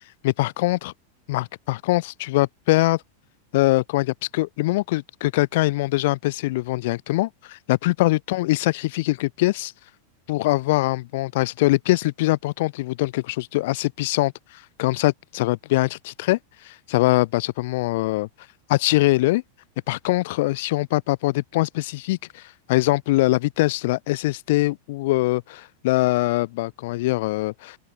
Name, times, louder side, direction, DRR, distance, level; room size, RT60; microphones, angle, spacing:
voice 1, 0.2-0.9 1.3-3.0 3.5-9.7 10.3-14.3 14.8-16.4 16.6-18.3 18.7-19.4 19.9-22.4 22.7-27.8, left 19 dB, 50° left, 0.4 m, -22 dB
open air
figure-of-eight pair, 90°, 0 cm